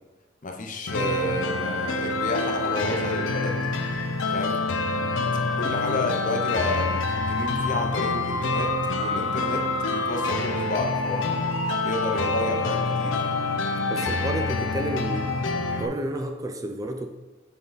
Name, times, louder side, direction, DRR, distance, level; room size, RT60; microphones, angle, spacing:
voice 1, 0.4-3.7 4.3-4.6 5.5-8.7 9.0-11.4 11.8-13.2, left 2 dB, 45° left, 3 dB, 0.7 m, -31 dB
sound 1, 0.9-15.9, left 3 dB, 85° left, 0.6 m, -26 dB
voice 2, 5.7-6.0 13.9-15.3 15.7-17.1, right 1 dB, 20° right, 5 dB, 0.3 m, -31 dB
7.2 x 3.8 x 4.0 m, 1.2 s
head